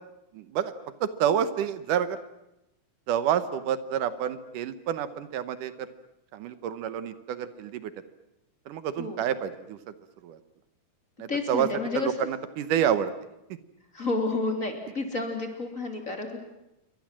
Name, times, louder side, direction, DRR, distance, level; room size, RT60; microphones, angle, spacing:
voice 1, 0.3-0.7 1.0-2.2 3.1-5.9 6.3-7.9 8.7-9.8 10.2-10.4 11.2-11.7 11.9-13.1, right 9 dB, 80° right, 12 dB, 2.6 m, -28 dB
voice 2, 11.3-12.1 13.9-16.4, left 3 dB, 25° left, 3 dB, 3.2 m, -30 dB
28.5 x 24.0 x 7.5 m, 0.88 s
omnidirectional pair, 3.7 m